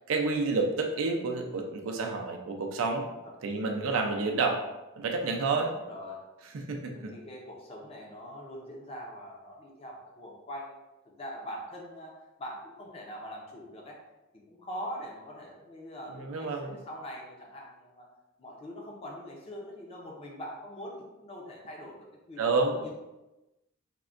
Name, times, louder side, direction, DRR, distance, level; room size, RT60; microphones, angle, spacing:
voice 1, 0.1-3.0 3.4-4.6 5.0-5.7 6.5-7.1 16.1-16.8 22.4-22.7, right 3 dB, 80° right, 3 dB, 0.4 m, -29 dB
voice 2, 3.2-4.0 5.7-6.2 6.9-14.0 14.5-18.1 18.4-22.5 22.8-22.9, equal, 30° left, -2 dB, 0.5 m, -43 dB
3.5 x 2.1 x 2.4 m, 1.0 s
head